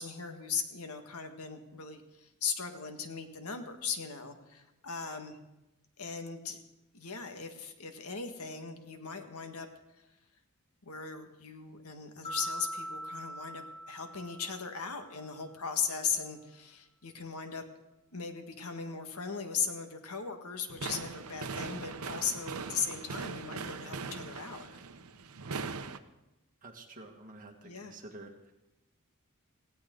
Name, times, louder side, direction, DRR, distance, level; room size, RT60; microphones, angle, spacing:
voice 1, 0.0-5.4 6.0-6.6 6.9-9.7 10.8-17.6 18.1-24.7 27.6-28.0, left 6 dB, 80° left, 6 dB, 1.8 m, -38 dB
sound 1, 12.2-15.4, equal, 30° left, 2.4 m, -42 dB
sound 2, 20.7-26.0, right 4 dB, 75° right, 0.9 m, -40 dB
voice 2, 26.6-28.5, right 2 dB, 40° right, 3 dB, 1.9 m, -49 dB
18.5 x 17.0 x 3.9 m, 0.97 s
head